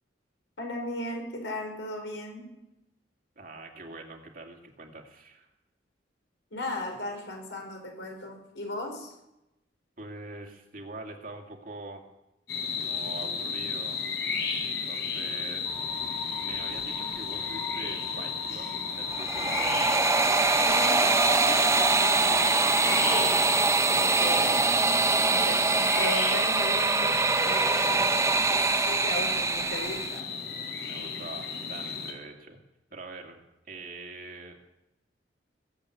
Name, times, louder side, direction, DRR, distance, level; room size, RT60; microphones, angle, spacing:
voice 1, 0.6-2.5 6.5-9.1 20.6-22.6 22.9-23.4 23.9-24.6 25.3-30.2, left 1 dB, 90° left, 2 dB, 4.7 m, -37 dB
voice 2, 3.4-5.5 10.0-12.0 12.8-14.0 14.9-15.7 16.4-19.8 30.8-32.6 32.9-34.6, right 2 dB, 50° right, 2 dB, 2.5 m, -44 dB
sound 1, 12.5-32.1, left 5 dB, 70° left, 3.8 m, -34 dB
sound 2, 15.7-23.7, left 4 dB, 15° left, 2.7 m, -41 dB
sound 3, 19.0-30.2, right 3 dB, 15° right, 0.6 m, -24 dB
19.5 x 8.2 x 8.3 m, 0.90 s
head